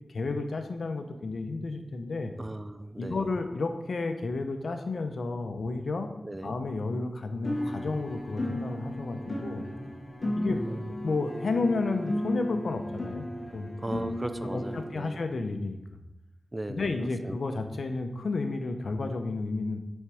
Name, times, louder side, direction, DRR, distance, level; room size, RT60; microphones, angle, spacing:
voice 1, 0.1-2.3 3.0-6.1 6.4-9.7 10.3-10.6 11.0-13.3 13.5-14.1 14.5-15.8 16.7-19.8, left 3 dB, 75° left, 7 dB, 0.7 m, -32 dB
voice 2, 2.4-3.3 6.2-6.5 10.5-10.9 13.8-15.2 16.5-17.4, right 1 dB, 25° right, 10 dB, 0.5 m, -37 dB
sound 1, 7.4-14.8, left 1 dB, 45° left, 1.3 m, -34 dB
6.4 x 4.4 x 4.8 m, 0.95 s
cardioid pair, 60°, 0 cm